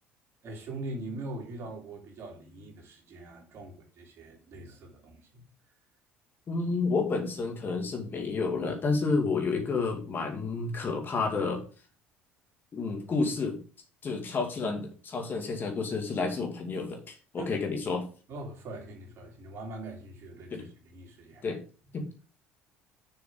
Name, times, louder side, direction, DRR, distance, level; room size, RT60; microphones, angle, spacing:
voice 1, 0.4-5.4 17.4-17.5 18.3-21.4 21.9-22.0, right 2 dB, 50° right, 3.3 m, -42 dB
voice 2, 6.5-11.6 12.7-13.6 14.0-18.1 20.5-20.7 21.4-21.6 21.9-22.1, left 4 dB, 35° left, 2.2 m, -30 dB
7.1 x 6.2 x 4.9 m
figure-of-eight pair, 60°, 6 cm